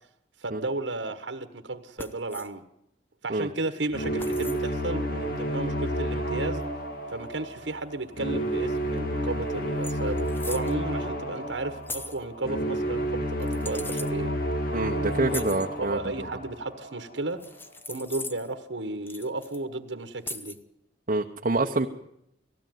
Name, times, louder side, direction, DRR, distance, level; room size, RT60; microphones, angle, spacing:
voice 1, 0.4-2.6 3.2-6.6 7.1-14.3 15.3-17.4 17.9-20.5, right 2 dB, 75° right, 9 dB, 1.4 m, -33 dB
sound 1, 2.0-2.5 4.2-4.6 6.6-6.7 9.0-9.1 9.3-9.5 9.8-10.7 11.9-12.2 13.4-14.1 15.3-15.7 17.4-18.5 19.1-19.6 20.3-20.6, left 2 dB, 10° left, 0.8 m, -39 dB
sound 2, 3.9-17.0, right 1 dB, 55° left, 2.0 m, -30 dB
voice 2, 14.7-16.0 21.1-21.9, right 2 dB, 45° right, 1 dB, 0.9 m, -26 dB
19.0 x 15.5 x 9.3 m, 0.78 s
head